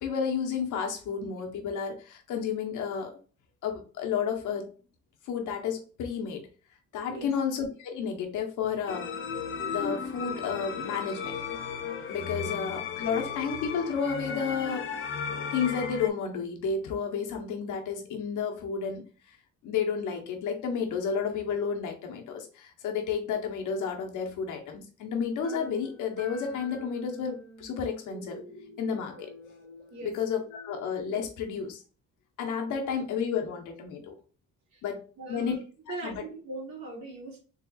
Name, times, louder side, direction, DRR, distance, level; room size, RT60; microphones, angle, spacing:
voice 1, 0.0-3.1 3.6-4.7 5.3-6.5 6.9-9.1 9.7-11.4 12.1-14.9 15.4-19.4 19.6-28.4 28.8-29.3 30.0-31.8 32.4-34.2 34.8-35.0 35.3-35.6 36.0-36.2, left 6 dB, 80° left, 3 dB, 1.0 m, -31 dB
sound 1, 8.9-16.1, left 6 dB, 40° left, 0.7 m, -35 dB
sound 2, 25.4-31.0, equal, 35° right, 1.8 m, -48 dB
voice 2, 35.2-35.6 35.9-37.4, right 2 dB, 70° right, -3 dB, 2.1 m, -39 dB
4.2 x 3.3 x 2.3 m, 0.38 s
cardioid pair, 90°, 30 cm